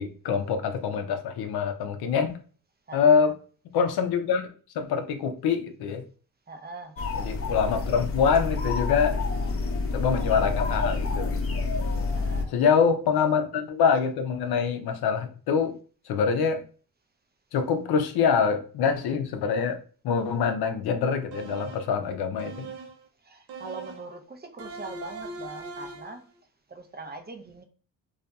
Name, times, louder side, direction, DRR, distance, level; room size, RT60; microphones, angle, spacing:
voice 1, 0.0-2.4 2.9-3.4 3.7-6.0 7.1-9.2 9.9-11.4 12.5-15.8 16.1-16.6 17.5-19.8 20.0-22.7, left 6 dB, 80° left, 7 dB, 0.6 m, -25 dB
voice 2, 2.9-3.3 6.5-7.0 12.1-12.5 23.2-26.3 26.7-27.6, right 3 dB, 25° right, 6 dB, 0.5 m, -42 dB
sound 1, 7.0-12.4, left 3 dB, 35° left, 0.6 m, -28 dB
sound 2, 21.3-22.0 22.4-23.0 23.5-24.1 24.6-26.2, right 3 dB, 80° right, 0.6 m, -40 dB
2.7 x 2.4 x 2.2 m, 0.39 s
cardioid pair, 60°, 38 cm